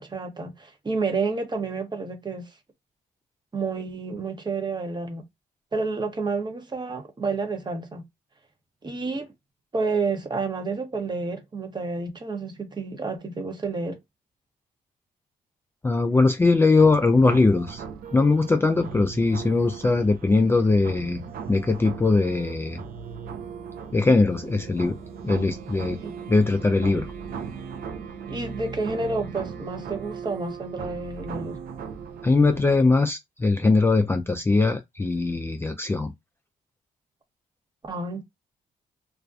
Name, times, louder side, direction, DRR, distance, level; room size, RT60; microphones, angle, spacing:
voice 1, 0.0-2.5 3.5-5.2 5.7-8.0 8.8-9.3 9.7-14.0 26.0-26.1 28.3-31.6 37.8-38.2, right 3 dB, 30° right, 0.8 m, -30 dB
voice 2, 15.8-17.9 18.1-21.2 21.5-22.8 23.9-24.9 25.2-26.0 26.3-27.1 32.2-36.1, left 3 dB, 15° left, 0.3 m, -21 dB
sound 1, 16.8-32.8, right 6 dB, 70° right, 0.5 m, -38 dB
2.4 x 2.1 x 2.4 m
supercardioid pair, 65°, 16 cm